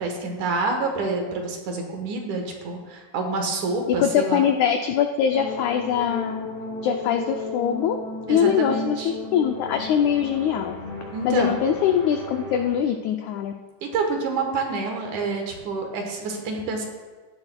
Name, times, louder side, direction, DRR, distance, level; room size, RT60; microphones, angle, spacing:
voice 1, 0.0-4.5 8.3-9.1 11.1-11.6 13.8-16.9, right 3 dB, 70° right, 2 dB, 2.5 m, -28 dB
voice 2, 3.9-6.5 6.8-8.0 8.3-10.8 11.2-13.5, left 8 dB, 85° left, 5 dB, 1.6 m, -22 dB
sound 1, 5.3-12.7, left 3 dB, 35° left, 4.0 m, -35 dB
15.5 x 10.5 x 2.2 m, 1.3 s
omnidirectional pair, 3.9 m